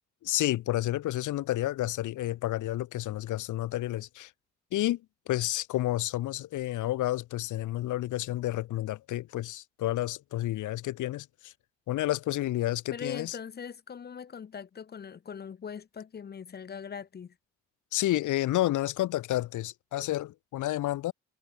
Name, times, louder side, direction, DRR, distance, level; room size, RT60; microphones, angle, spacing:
voice 1, 0.2-4.3 4.7-5.0 5.3-11.5 11.9-13.4 17.9-21.1, left 15 dB, 80° left, 1.2 m, -30 dB
voice 2, 12.9-17.3, left 7 dB, 35° left, 0.7 m, -41 dB
cardioid pair, 90°, 30 cm